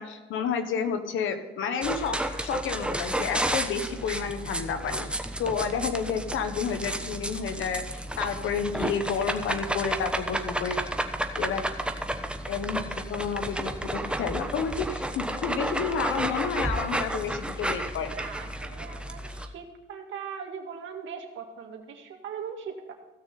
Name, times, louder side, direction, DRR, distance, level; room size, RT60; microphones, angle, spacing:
voice 1, 0.0-5.1 5.4-10.8 11.3-11.7 12.5-18.1, left 6 dB, 80° left, 8 dB, 1.3 m, -30 dB
sound 1, 1.8-19.5, right 1 dB, 5° right, 1.1 m, -32 dB
voice 2, 18.1-22.9, right 7 dB, 75° right, 3 dB, 2.1 m, -40 dB
16.0 x 6.5 x 4.2 m, 1.2 s
cardioid pair, 90°, 20 cm